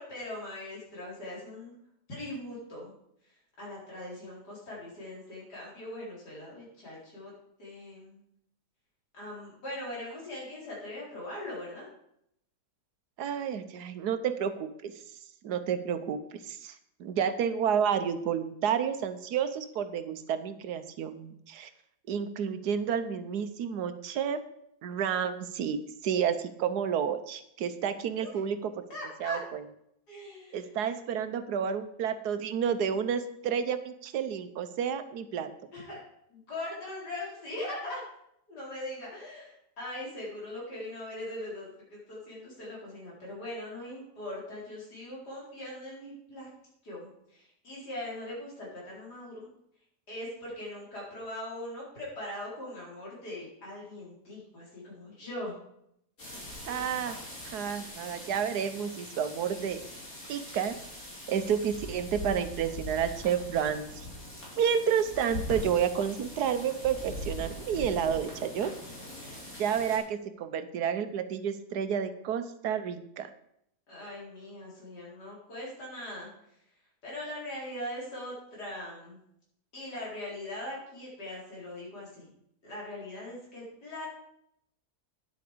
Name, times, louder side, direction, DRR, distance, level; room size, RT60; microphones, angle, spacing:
voice 1, 0.0-1.7 2.1-2.9 3.6-7.3 7.6-8.2 9.1-11.9 28.2-28.4 28.9-29.4 30.1-30.8 35.7-36.0 36.3-38.0 38.5-46.5 46.8-49.5 50.1-55.6 73.9-76.3 77.0-79.2 79.7-82.3 82.6-84.1, left 1 dB, 85° left, -5 dB, 4.8 m, -41 dB
voice 2, 13.2-14.9 15.4-21.7 22.1-24.4 24.8-28.7 29.2-29.6 30.5-35.5 56.7-57.2 57.5-59.8 60.2-60.8 61.3-63.9 64.6-68.7 69.3-73.3, right 8 dB, 80° right, 11 dB, 1.4 m, -30 dB
sound 1, 56.2-70.0, left 1 dB, 60° left, 3.9 m, -42 dB
9.7 x 8.1 x 5.1 m, 0.74 s
omnidirectional pair, 1.7 m